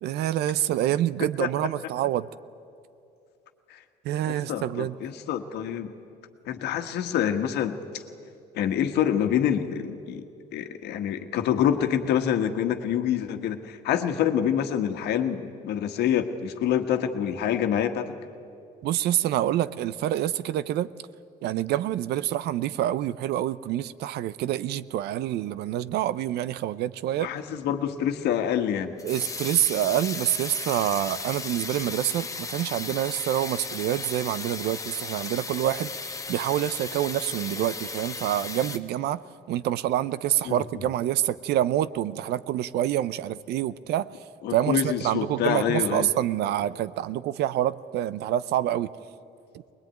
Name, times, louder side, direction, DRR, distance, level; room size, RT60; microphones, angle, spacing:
voice 1, 0.0-2.3 4.0-5.0 18.8-20.9 21.4-27.3 29.0-39.2 39.5-44.1 44.5-48.9, right 12 dB, 75° right, 17 dB, 0.7 m, -27 dB
voice 2, 4.3-5.9 6.5-7.8 8.5-10.2 10.5-18.1 27.2-29.0 40.4-40.6 44.4-46.1, left 9 dB, 75° left, 7 dB, 1.5 m, -26 dB
sound 1, 27.1-38.8, left 4 dB, 20° left, 1.2 m, -36 dB
21.0 x 20.5 x 9.2 m, 2.6 s
cardioid pair, 110°, 17 cm